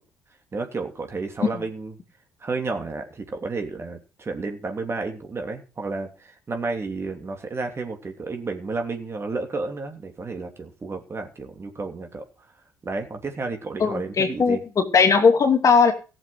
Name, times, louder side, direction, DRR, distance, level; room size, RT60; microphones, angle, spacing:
voice 1, 0.5-1.9 2.4-12.3 12.8-14.6, right 3 dB, 35° right, 4 dB, 3.1 m, -31 dB
voice 2, 13.8-15.9, left 5 dB, 45° left, 5 dB, 2.6 m, -18 dB
15.0 x 7.5 x 6.4 m, 0.33 s
hypercardioid pair, 60°, 8 cm